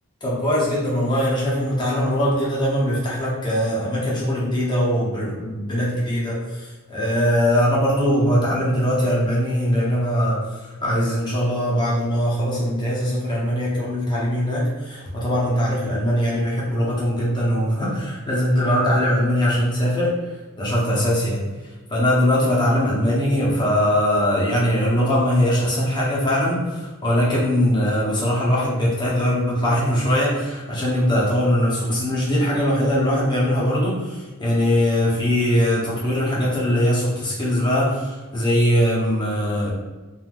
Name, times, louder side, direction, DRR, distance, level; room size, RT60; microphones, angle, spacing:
voice 1, 0.2-20.1 20.6-39.7, equal, 20° left, -6 dB, 0.8 m, -21 dB
3.3 x 2.6 x 2.5 m, 1.2 s
head